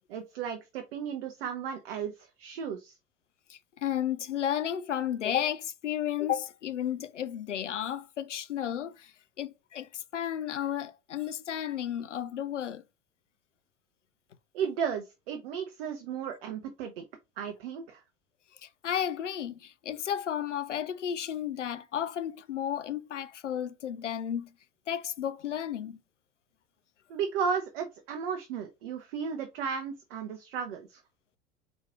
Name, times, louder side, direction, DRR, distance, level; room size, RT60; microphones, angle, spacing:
voice 1, 0.1-2.9 14.5-17.0 17.4-18.0 27.1-31.0, right 7 dB, 55° right, 0.8 m, -34 dB
voice 2, 3.5-12.8 18.6-24.5 24.9-26.0, left 10 dB, 80° left, 0.5 m, -33 dB
4.6 x 4.1 x 2.3 m
figure-of-eight pair, 80°, 36 cm